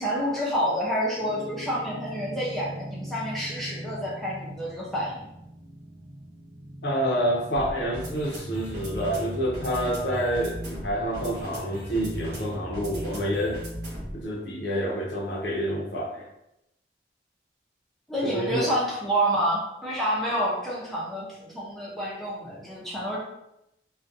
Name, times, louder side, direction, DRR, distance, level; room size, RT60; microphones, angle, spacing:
voice 1, 0.0-5.3 18.1-23.2, equal, ahead, -7 dB, 0.5 m, -28 dB
sound 1, 1.2-14.2, equal, 70° right, 0.9 m, -38 dB
voice 2, 6.8-13.6 14.1-16.3 18.3-18.7, equal, 75° left, 0 dB, 0.6 m, -28 dB
2.5 x 2.1 x 2.5 m, 0.84 s
head